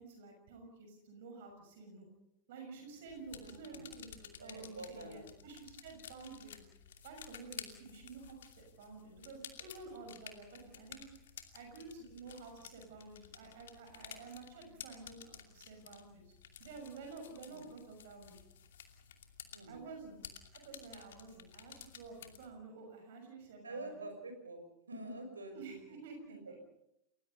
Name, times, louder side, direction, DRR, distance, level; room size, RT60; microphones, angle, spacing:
voice 1, 0.0-2.1 2.5-6.7 7.0-11.0 11.5-16.3 16.6-18.4 19.7-20.2 20.5-23.9 25.5-26.7, right 4 dB, 55° right, 4 dB, 6.3 m, -51 dB
sound 1, 3.1-22.5, left 9 dB, 60° left, 2.6 m, -53 dB
voice 2, 3.4-3.9 4.4-5.2 17.4-17.7 19.5-19.8 23.6-24.6 24.9-26.0 26.3-26.7, right 2 dB, 75° right, 6 dB, 6.3 m, -47 dB
30.0 x 20.0 x 5.5 m, 0.83 s
figure-of-eight pair, 90°, 0 cm